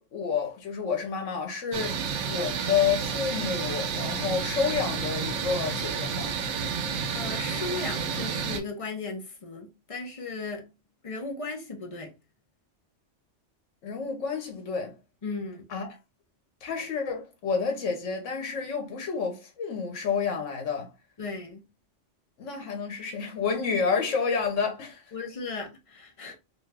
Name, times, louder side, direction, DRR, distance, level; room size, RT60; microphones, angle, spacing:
voice 1, 0.0-2.0 2.2-6.4 13.8-15.0 15.7-16.0 16.6-20.9 22.4-25.0, left 6 dB, 85° left, 1.1 m, -29 dB
sound 1, 1.7-8.6, right 6 dB, 80° right, 0.9 m, -30 dB
voice 2, 7.1-10.6 11.0-12.1 15.2-15.6 21.2-21.6 25.1-26.3, left 3 dB, 35° left, 0.6 m, -36 dB
2.6 x 2.4 x 3.2 m
omnidirectional pair, 1.2 m